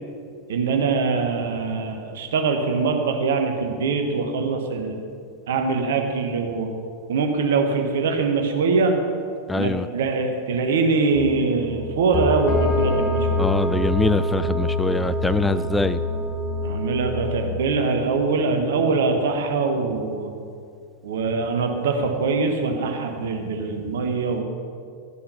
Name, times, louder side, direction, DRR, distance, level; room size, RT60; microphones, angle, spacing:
voice 1, 0.5-5.0 5.5-6.7 7.1-9.0 9.6-13.6 16.6-20.3 21.0-24.4, right 4 dB, 60° right, 4 dB, 1.3 m, -23 dB
voice 2, 9.5-9.9 13.4-16.0, left 3 dB, 10° left, 13 dB, 0.3 m, -23 dB
sound 1, 11.1-17.5, left 1 dB, 25° left, 1.2 m, -25 dB
12.0 x 6.2 x 5.6 m, 2.3 s
figure-of-eight pair, 90°, 0 cm